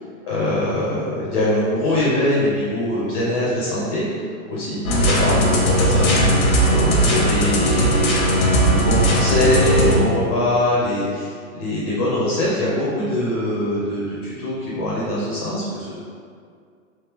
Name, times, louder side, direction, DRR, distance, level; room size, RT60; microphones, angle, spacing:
voice 1, 0.3-4.0 4.5-6.4 6.7-15.9, left 1 dB, 30° left, -8 dB, 0.4 m, -23 dB
sound 1, 4.8-10.0, equal, 90° left, 1.0 m, -17 dB
3.4 x 2.6 x 3.3 m, 2.2 s
hypercardioid pair, 170°, 42 cm